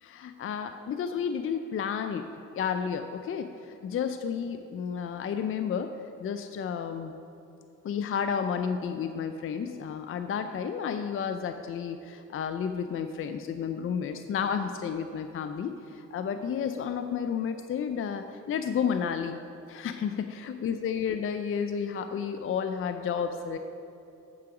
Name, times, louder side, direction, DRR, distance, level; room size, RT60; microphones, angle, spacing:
voice 1, 0.0-2.3 2.5-5.9 6.2-7.1 7.8-19.4 19.7-23.6, left 7 dB, 45° left, 8 dB, 0.5 m, -31 dB
8.9 x 7.7 x 4.9 m, 2.8 s
cardioid pair, 90°, 30 cm